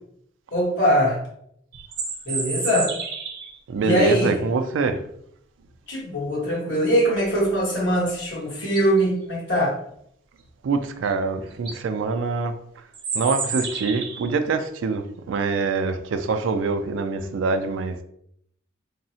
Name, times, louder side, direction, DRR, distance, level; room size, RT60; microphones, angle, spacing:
voice 1, 0.5-1.2 2.2-2.9 3.8-4.4 5.9-9.8, equal, 80° left, 1.3 m, -22 dB
sound 1, 1.7-3.6 8.1-8.2 8.6-9.0 11.0-11.1 11.5-11.8 12.9-14.3, right 5 dB, 55° right, 0.6 m, -30 dB
voice 2, 3.7-5.0 10.6-12.5 13.1-18.0, right 4 dB, 90° right, 0.3 m, -25 dB
3.6 x 2.0 x 2.7 m
head